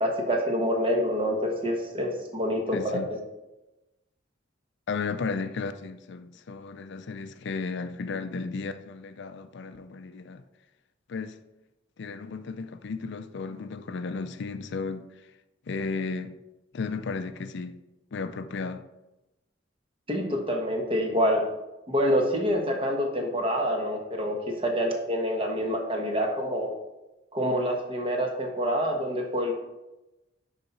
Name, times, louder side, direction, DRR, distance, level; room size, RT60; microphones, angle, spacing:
voice 1, 0.0-3.2 20.1-21.4 21.9-26.7 27.3-29.5, equal, 30° right, 1.2 m, -27 dB
voice 2, 2.7-3.1 4.9-10.4 11.1-11.4 12.0-15.3 15.7-16.3 16.7-17.8 18.1-18.9, left 4 dB, 60° left, 0.4 m, -34 dB
10.0 x 4.1 x 4.1 m
head